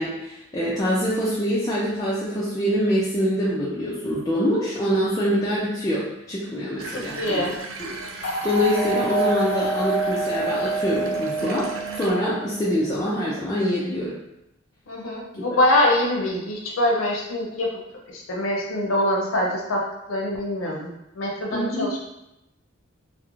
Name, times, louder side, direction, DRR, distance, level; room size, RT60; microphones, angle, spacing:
voice 1, 0.0-7.5 7.8-7.9 8.4-14.1 15.3-15.4 21.5-21.9, equal, 20° left, -8 dB, 0.3 m, -25 dB
Water tap faucet / Bathtub (filling or washing), 6.8-12.1, right 4 dB, 85° right, 0.3 m, -37 dB
voice 2, 7.2-7.6 14.9-17.7 18.1-19.8 20.1-22.0, left 1 dB, 85° left, -1 dB, 0.5 m, -24 dB
sound 1, 8.2-12.4, right 2 dB, 55° left, 0.8 m, -26 dB
2.4 x 2.0 x 3.0 m, 0.87 s
head